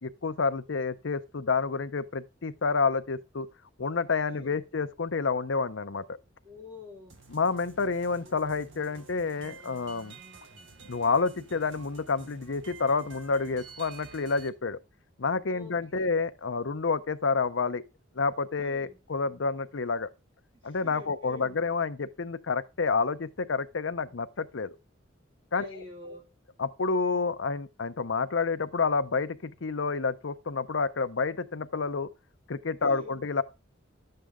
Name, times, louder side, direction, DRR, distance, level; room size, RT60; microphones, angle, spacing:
voice 1, 0.0-3.5 3.8-6.0 7.3-10.2 10.9-14.8 15.2-17.8 18.1-20.1 20.6-24.7 25.5-25.8 26.6-32.1 32.5-33.4, left 4 dB, 75° left, 0.7 m, -29 dB
voice 2, 4.3-4.6 6.4-7.1 15.5-16.1 18.6-19.0 20.6-21.6 25.5-26.2 32.8-33.2, left 2 dB, 30° right, 4.2 m, -47 dB
sound 1, 7.1-14.5, right 4 dB, 75° right, 1.6 m, -50 dB
11.5 x 7.8 x 3.6 m
head